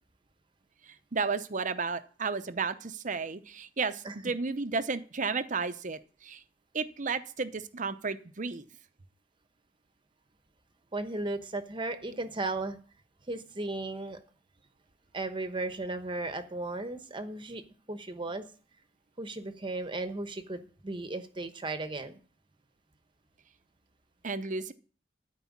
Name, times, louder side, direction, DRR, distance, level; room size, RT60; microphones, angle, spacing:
voice 1, 0.8-6.4 6.7-8.6 24.2-24.7, right 4 dB, 45° right, 11 dB, 0.7 m, -33 dB
voice 2, 10.9-12.8 13.3-14.2 15.1-17.6 17.9-18.4 19.2-22.2, right 2 dB, 25° right, 9 dB, 1.0 m, -35 dB
13.5 x 4.7 x 7.3 m, 0.41 s
head